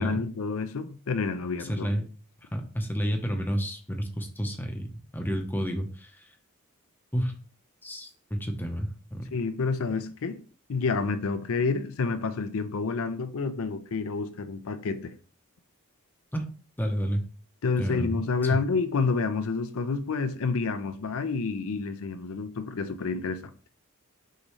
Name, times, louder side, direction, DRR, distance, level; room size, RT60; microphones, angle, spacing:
voice 1, 0.0-1.9 9.3-10.4 10.7-15.1 17.6-23.4, left 4 dB, 65° left, 0.5 m, -29 dB
voice 2, 1.6-2.0 2.5-6.2 7.1-7.3 7.8-9.3 16.3-16.4 16.8-17.2 17.8-18.6, equal, 10° left, 0.7 m, -30 dB
6.4 x 2.7 x 3.1 m
head